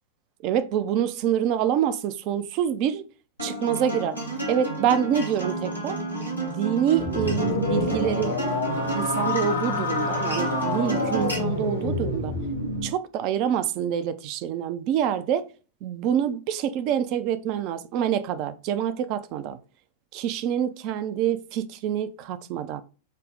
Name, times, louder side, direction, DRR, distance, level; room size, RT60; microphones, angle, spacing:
voice 1, 0.4-3.0 3.4-4.2 4.5-6.0 6.3-12.3 12.8-15.5 15.8-19.6 20.1-22.8, right 9 dB, 40° right, 0.4 m, -26 dB
Acoustic guitar, 3.4-11.4, right 2 dB, 90° right, 1.1 m, -31 dB
sound 1, 7.0-12.9, left 2 dB, 80° left, 1.1 m, -28 dB
5.3 x 2.0 x 3.7 m
figure-of-eight pair, 90°, 0 cm